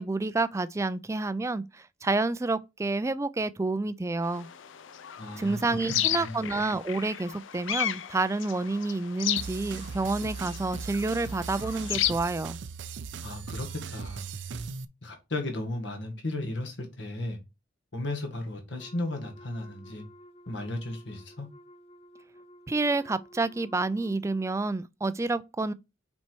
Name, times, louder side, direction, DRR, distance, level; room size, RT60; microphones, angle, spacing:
voice 1, 0.0-4.5 5.4-12.6 22.7-25.7, right 3 dB, 15° right, 0.3 m, -29 dB
sound 1, 4.3-12.1, left 12 dB, 85° left, 0.5 m, -34 dB
voice 2, 5.2-6.4 13.2-14.2 15.0-17.4 17.9-20.0 20.5-21.5, left 2 dB, 65° left, 1.8 m, -35 dB
sound 2, 9.4-14.8, right 5 dB, 70° right, 0.5 m, -38 dB
Wind instrument woodwind instrument, 18.8-24.5, equal, 35° left, 0.6 m, -53 dB
5.8 x 4.4 x 4.5 m
head